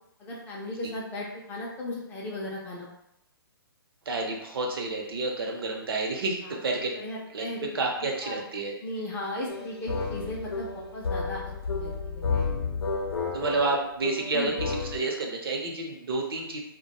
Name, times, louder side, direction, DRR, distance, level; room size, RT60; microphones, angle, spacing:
voice 1, 0.2-2.9 6.4-6.6 6.9-7.7 8.2-8.4 8.8-11.4 11.7-12.5 14.3-14.5, left 1 dB, 15° left, -4 dB, 0.3 m, -36 dB
voice 2, 4.1-6.9 7.3-7.5 7.7-8.7 13.3-16.6, right 3 dB, 70° right, 0 dB, 0.6 m, -30 dB
sound 1, 9.5-15.0, left 4 dB, 80° left, 0.5 m, -31 dB
2.2 x 2.1 x 2.8 m, 0.79 s
hypercardioid pair, 145°, 13 cm